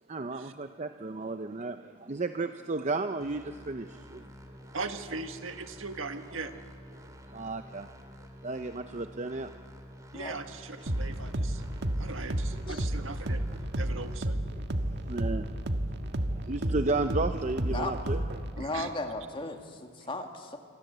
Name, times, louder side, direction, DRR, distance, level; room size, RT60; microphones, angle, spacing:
voice 1, 0.1-4.8 6.9-9.7 10.9-11.0 11.8-12.1 12.7-13.1 13.5-14.1 14.5-18.5, right 3 dB, 35° right, 8 dB, 0.6 m, -35 dB
sound 1, 3.2-14.2, equal, 15° right, 2.2 m, -50 dB
voice 2, 4.7-6.5 10.1-11.6 12.0-13.4 13.8-14.4 18.6-18.9, right 3 dB, 70° right, 7 dB, 1.8 m, -39 dB
sound 2, 10.9-18.5, right 1 dB, 55° right, 1.6 m, -32 dB
voice 3, 18.6-20.6, left 2 dB, 25° left, 4 dB, 2.1 m, -36 dB
28.5 x 25.0 x 8.1 m, 2.1 s
head